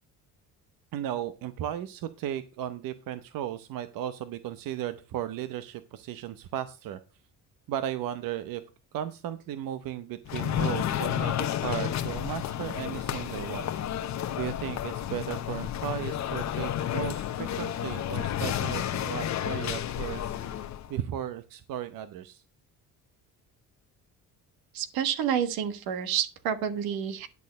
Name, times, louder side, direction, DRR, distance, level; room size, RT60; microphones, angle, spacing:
voice 1, 0.9-7.0 7.7-8.6 8.9-13.7 14.4-22.4, right 11 dB, 70° right, 12 dB, 0.8 m, -35 dB
sound 1, 10.3-20.9, left 10 dB, 50° left, 0.9 m, -31 dB
voice 2, 24.7-27.3, right 9 dB, 85° right, 11 dB, 1.4 m, -29 dB
10.5 x 4.3 x 6.6 m, 0.33 s
cardioid pair, 105°, 35 cm